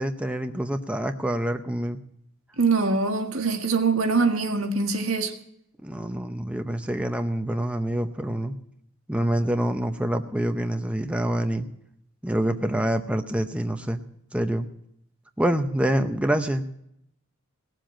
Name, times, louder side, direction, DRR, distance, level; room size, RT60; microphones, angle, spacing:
voice 1, 0.0-2.0 5.8-8.6 9.1-11.7 12.2-14.0 14.3-14.7 15.4-16.7, right 1 dB, 5° right, 6 dB, 0.7 m, -26 dB
voice 2, 2.6-5.3, right 4 dB, 75° right, 5 dB, 1.7 m, -23 dB
18.0 x 7.7 x 8.9 m, 0.76 s
head